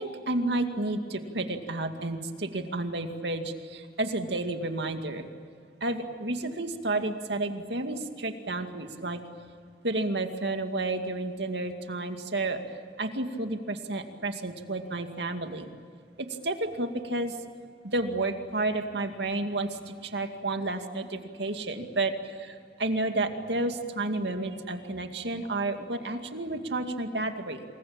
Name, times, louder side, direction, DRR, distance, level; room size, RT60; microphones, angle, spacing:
voice 1, 0.0-5.3 5.8-9.2 9.8-12.6 13.0-15.7 16.2-17.4 17.8-27.6, right 2 dB, 75° right, 6 dB, 2.3 m, -31 dB
27.5 x 21.5 x 8.9 m, 2.2 s
head